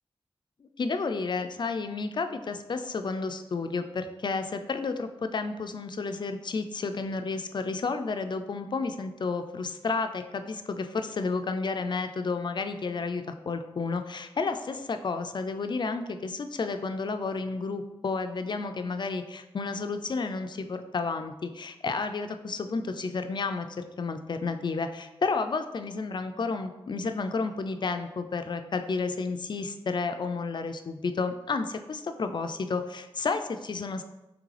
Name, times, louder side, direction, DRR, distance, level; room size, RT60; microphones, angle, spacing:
voice 1, 0.6-23.7 24.0-34.0, left 4 dB, 50° left, 8 dB, 0.3 m, -31 dB
3.7 x 3.3 x 3.2 m, 0.99 s
cardioid pair, 60°, 10 cm